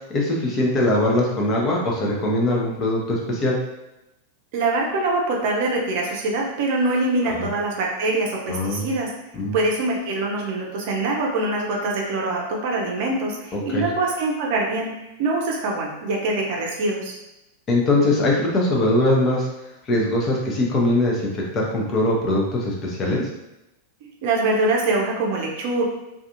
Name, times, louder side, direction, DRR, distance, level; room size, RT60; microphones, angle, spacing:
voice 1, 0.1-3.6 8.5-8.9 9.3-9.5 13.5-13.9 17.7-19.5 19.9-23.3, left 1 dB, 30° left, -2 dB, 0.6 m, -21 dB
voice 2, 4.5-9.1 9.5-14.9 15.2-17.1 24.0-25.9, right 2 dB, 50° right, -1 dB, 0.5 m, -24 dB
2.4 x 2.3 x 2.7 m, 0.93 s
figure-of-eight pair, 90°, 0 cm